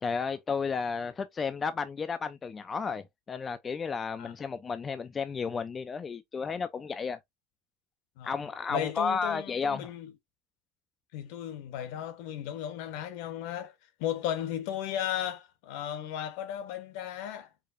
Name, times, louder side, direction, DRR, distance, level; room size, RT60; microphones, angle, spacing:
voice 1, 0.0-7.2 8.2-9.9, left 5 dB, 25° left, 0.4 m, -32 dB
voice 2, 8.7-10.1 11.1-13.7 14.0-17.5, left 10 dB, 70° left, 0.9 m, -35 dB
4.8 x 2.5 x 2.5 m
supercardioid pair, 125°, 0 cm